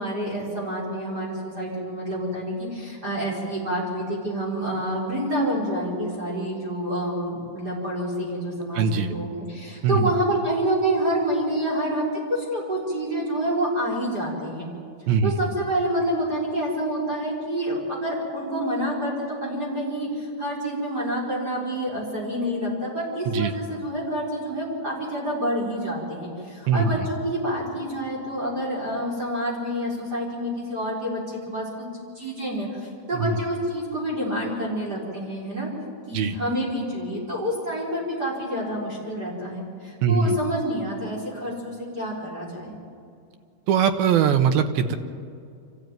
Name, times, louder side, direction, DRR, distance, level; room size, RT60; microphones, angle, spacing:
voice 1, 0.0-12.0 12.3-14.7 15.2-31.8 32.1-35.7 36.1-42.8, equal, 25° right, -4 dB, 4.8 m, -28 dB
voice 2, 8.7-9.1 9.8-10.1 15.1-15.3 23.3-23.5 26.7-27.1 33.1-33.4 36.1-36.4 40.0-40.4 43.7-45.0, right 6 dB, 85° right, 7 dB, 3.0 m, -21 dB
25.5 x 15.0 x 9.2 m, 2.4 s
omnidirectional pair, 4.3 m